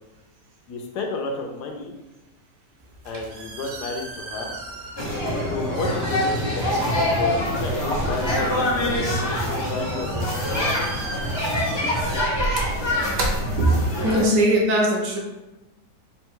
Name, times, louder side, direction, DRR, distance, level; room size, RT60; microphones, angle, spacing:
voice 1, 0.7-2.0 3.0-4.5 5.5-10.7, left 3 dB, 75° left, 2 dB, 1.2 m, -32 dB
sound 1, 2.8-14.2, right 2 dB, 60° right, 0.9 m, -36 dB
sound 2, 5.0-14.2, left 1 dB, 40° left, 0.4 m, -25 dB
voice 2, 13.6-15.2, right 1 dB, 85° right, 0 dB, 1.5 m, -20 dB
3.8 x 2.2 x 4.5 m, 1.0 s
omnidirectional pair, 1.8 m